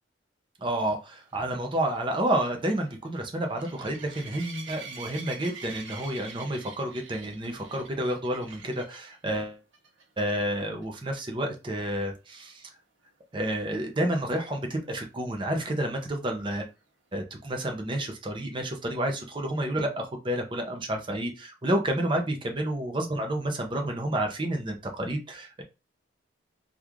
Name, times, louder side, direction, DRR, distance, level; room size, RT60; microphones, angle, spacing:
voice 1, 0.6-9.6 10.2-12.7 13.3-16.7 17.1-25.6, right 1 dB, 25° right, 0.7 m, -30 dB
sound 1, 1.2-9.1 9.7-10.0 10.3-10.4 10.8-10.9 14.5-14.6, right 5 dB, 75° right, 0.8 m, -45 dB
3.0 x 2.4 x 3.5 m
head